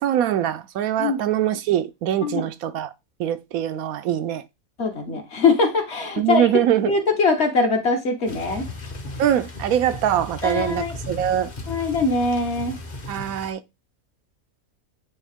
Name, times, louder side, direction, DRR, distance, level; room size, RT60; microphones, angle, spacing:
voice 1, 0.0-2.9 3.2-4.4 6.2-6.9 9.2-11.5 13.1-13.6, right 10 dB, 80° right, 1.0 m, -23 dB
voice 2, 4.8-6.5 6.9-8.7 10.4-10.9 11.7-12.7, left 4 dB, 50° left, 1.4 m, -22 dB
sound 1, 8.3-13.5, left 2 dB, 35° left, 1.0 m, -36 dB
9.1 x 3.1 x 3.5 m
omnidirectional pair, 1.5 m